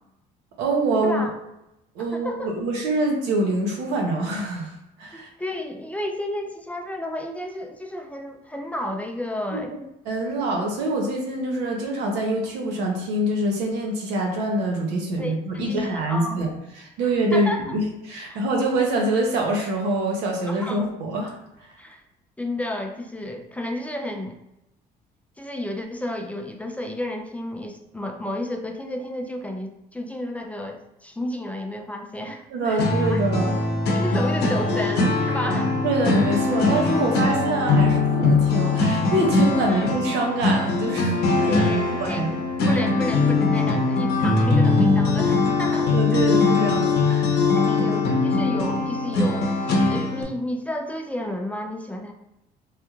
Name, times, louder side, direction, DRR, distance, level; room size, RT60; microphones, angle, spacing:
voice 1, 0.6-1.3 1.9-4.7 5.0-5.3 9.5-9.6 10.1-16.5 16.8-21.3 32.5-33.6 35.8-42.4 45.8-47.5, right 1 dB, 90° right, 0 dB, 0.9 m, -25 dB
voice 2, 2.0-2.5 5.1-9.7 15.2-16.4 17.3-17.6 18.2-18.4 20.5-20.9 21.8-22.0 22.4-24.4 25.4-33.2 33.9-35.8 39.7-39.9 41.4-46.3 47.5-49.5 49.9-52.1, left 1 dB, 10° left, 2 dB, 0.3 m, -32 dB
sound 1, 32.8-50.2, left 3 dB, 75° left, 0.7 m, -21 dB
3.3 x 2.9 x 2.4 m, 0.87 s
cardioid pair, 110°, 17 cm